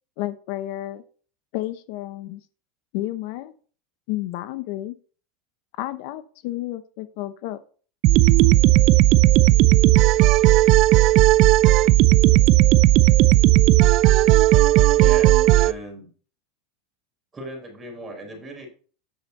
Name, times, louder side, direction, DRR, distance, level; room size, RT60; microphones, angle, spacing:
voice 1, 0.2-1.0 1.5-2.4 2.9-3.5 4.1-4.9 5.8-7.6, left 15 dB, 65° left, 12 dB, 0.8 m, -31 dB
sound 1, 8.0-15.7, right 17 dB, 50° right, 0.5 m, -15 dB
voice 2, 15.0-16.1 17.3-18.7, right 1 dB, 15° right, 1 dB, 4.7 m, -37 dB
9.6 x 6.7 x 4.2 m, 0.41 s
supercardioid pair, 135°, 0 cm